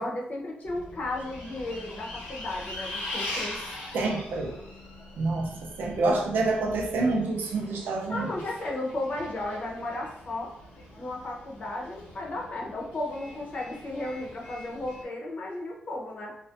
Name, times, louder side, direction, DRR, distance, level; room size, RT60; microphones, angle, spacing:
voice 1, 0.0-3.6 8.1-10.5 11.0-16.4, left 2 dB, 55° left, -2 dB, 0.7 m, -34 dB
Bus, 0.6-15.0, left 1 dB, 85° left, 0.9 m, -42 dB
voice 2, 3.9-4.6 5.2-8.3, right 3 dB, 75° right, 1 dB, 0.4 m, -27 dB
2.5 x 2.1 x 2.5 m, 0.73 s
cardioid pair, 70°, 3 cm